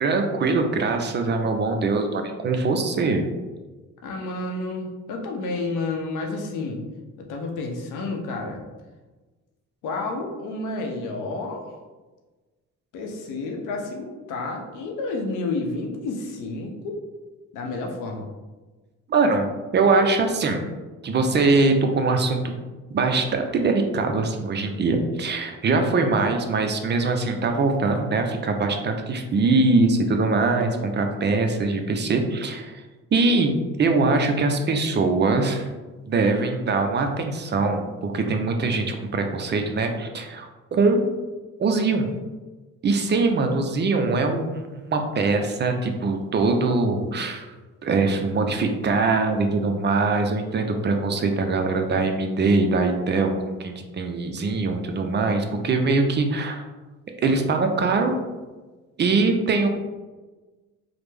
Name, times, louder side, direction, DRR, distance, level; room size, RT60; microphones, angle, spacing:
voice 1, 0.0-3.3 19.1-20.6 21.0-22.5 22.9-32.8 33.1-33.5 33.8-35.7 36.0-41.1 41.6-42.1 42.8-47.5 47.8-56.6 57.2-58.2 59.0-59.7, right 3 dB, 35° right, 5 dB, 0.4 m, -22 dB
voice 2, 4.0-6.8 7.2-8.6 9.8-11.7 12.9-17.0 17.5-18.3, left 3 dB, 85° left, 2 dB, 0.7 m, -30 dB
3.3 x 2.0 x 3.2 m, 1.2 s
cardioid pair, 90°, 30 cm